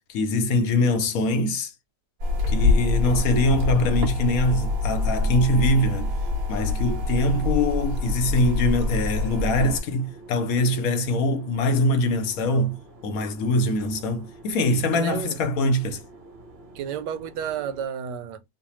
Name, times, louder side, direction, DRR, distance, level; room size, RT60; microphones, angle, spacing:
voice 1, 0.1-1.7 2.5-6.1 6.5-12.8 13.0-16.0, left 1 dB, 65° left, 1.0 m, -23 dB
sound 1, 2.2-17.9, right 2 dB, 40° right, 1.4 m, -48 dB
sound 2, 2.2-9.8, left 2 dB, 60° right, 1.2 m, -25 dB
voice 2, 14.9-15.4 16.7-18.4, right 8 dB, 90° right, 1.2 m, -31 dB
3.2 x 2.1 x 2.9 m
omnidirectional pair, 1.8 m